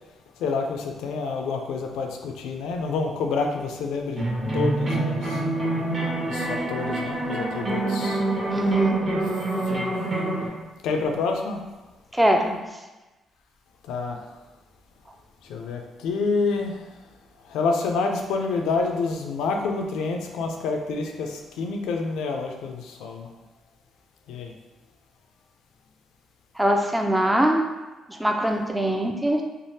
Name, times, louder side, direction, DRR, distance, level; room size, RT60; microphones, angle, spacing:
voice 1, 0.4-4.3 4.5-5.4 6.3-8.2 9.0-9.2 9.7-9.9 10.8-11.6 13.9-14.2 15.4-16.8 17.5-23.3 24.3-24.5, left 4 dB, 90° left, 3 dB, 0.4 m, -28 dB
sound 1, 4.2-10.5, right 2 dB, 35° right, 0.9 m, -26 dB
voice 2, 8.5-9.0 12.1-12.6 26.6-27.6 28.1-29.4, right 1 dB, 10° right, 2 dB, 0.3 m, -22 dB
3.3 x 2.0 x 2.7 m, 1.1 s
cardioid pair, 90°, 0 cm